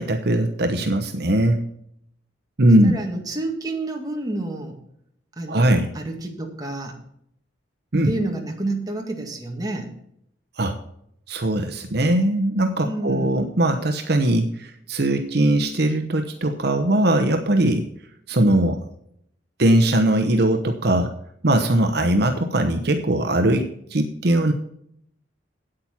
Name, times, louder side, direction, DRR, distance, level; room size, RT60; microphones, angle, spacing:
voice 1, 0.0-1.6 2.6-2.9 5.5-5.9 7.9-8.1 10.6-10.8 11.3-17.9 18.3-18.8 19.6-21.1 21.4-24.5, right 1 dB, 60° right, 6 dB, 0.9 m, -20 dB
voice 2, 2.8-4.8 5.4-7.0 8.0-9.9 12.8-13.4, right 2 dB, 20° right, 1 dB, 2.0 m, -29 dB
8.8 x 8.7 x 5.8 m, 0.71 s
head